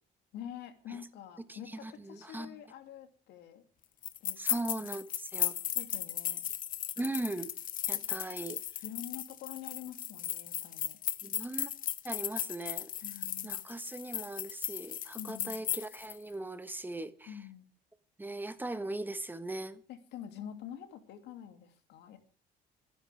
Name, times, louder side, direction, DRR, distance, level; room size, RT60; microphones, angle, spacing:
voice 1, 0.3-3.6 4.2-4.4 5.7-6.4 8.8-11.0 13.0-13.7 15.2-15.6 17.3-17.7 19.9-22.2, left 10 dB, 80° left, 2.6 m, -46 dB
voice 2, 1.5-2.6 4.4-5.6 7.0-7.6 7.9-8.6 11.2-11.7 12.0-12.9 13.4-17.4 18.2-19.8, right 2 dB, 10° right, 1.3 m, -39 dB
sound 1, 4.0-16.2, left 11 dB, 55° left, 1.0 m, -36 dB
26.5 x 10.5 x 3.4 m
cardioid pair, 110°, 17 cm